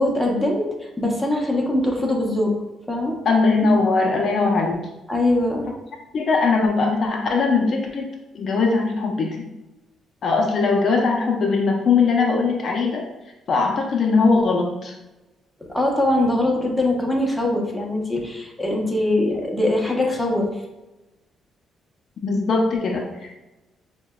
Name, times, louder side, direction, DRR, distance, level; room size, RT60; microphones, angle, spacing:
voice 1, 0.0-2.6 2.9-3.2 5.1-5.7 15.6-20.5, left 1 dB, 5° left, 0 dB, 0.7 m, -22 dB
voice 2, 3.2-4.9 6.1-8.1 8.3-9.4 10.2-13.1 13.5-14.9 22.2-23.3, left 4 dB, 55° left, 1 dB, 0.4 m, -20 dB
4.5 x 2.1 x 2.2 m, 1.0 s
cardioid pair, 90°, 0 cm